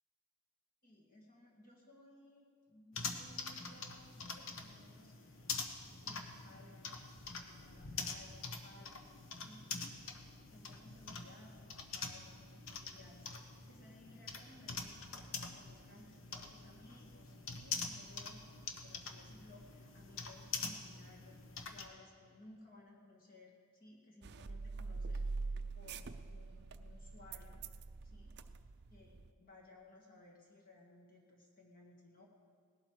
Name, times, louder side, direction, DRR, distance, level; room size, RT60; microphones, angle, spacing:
voice 1, 0.8-5.5 6.0-7.0 7.3-9.7 10.5-18.4 18.8-27.7 28.0-28.5 28.9-32.3, left 2 dB, 40° left, -2 dB, 2.1 m, -60 dB
sound 1, 2.9-21.9, left 4 dB, 60° left, 1.2 m, -45 dB
sound 2, 24.2-29.3, right 3 dB, 50° right, 0.5 m, -44 dB
18.5 x 12.0 x 4.9 m, 2.1 s
head